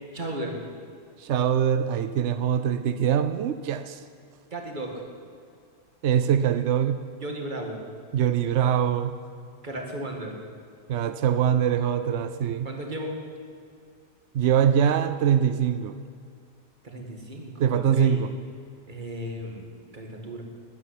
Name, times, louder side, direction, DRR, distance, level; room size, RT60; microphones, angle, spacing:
voice 1, 0.1-0.6 4.5-5.0 7.2-7.8 9.6-10.4 12.6-13.1 16.8-18.2 18.9-20.4, right 1 dB, 30° right, 2 dB, 2.0 m, -35 dB
voice 2, 1.2-4.0 6.0-7.0 8.1-9.2 10.9-12.7 14.3-16.0 17.6-18.3, right 9 dB, 75° right, 11 dB, 0.6 m, -23 dB
12.5 x 9.7 x 9.9 m, 2.3 s
omnidirectional pair, 1.8 m